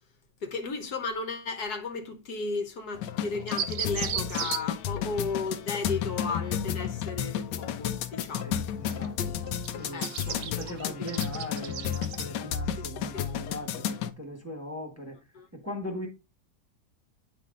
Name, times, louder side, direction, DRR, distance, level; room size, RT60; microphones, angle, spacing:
voice 1, 0.4-8.6 9.9-10.4 10.7-11.1 12.8-13.3 15.3-15.5, left 4 dB, 65° left, 1.5 m, -35 dB
sound 1, 2.9-14.1, left 9 dB, 85° left, 1.2 m, -32 dB
sound 2, 3.5-4.6 8.9-9.2 9.5-12.2, right 9 dB, 80° right, 1.4 m, -34 dB
voice 2, 8.4-15.2 15.5-16.1, left 1 dB, 10° right, 1.1 m, -40 dB
9.5 x 3.3 x 3.7 m
omnidirectional pair, 1.9 m